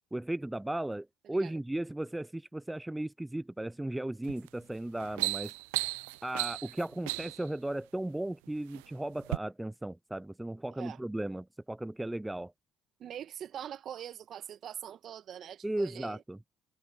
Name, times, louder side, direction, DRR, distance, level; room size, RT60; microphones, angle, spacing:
voice 1, 0.1-5.5 6.2-12.5 15.6-16.4, right 1 dB, 10° right, 0.5 m, -36 dB
sound 1, 4.2-4.5 4.9-7.5 8.3-8.8 9.2-9.4, right 27 dB, 85° right, 0.3 m, -35 dB
voice 2, 13.0-16.2, right 10 dB, 55° right, 1.7 m, -43 dB
hypercardioid pair, 65°, 0 cm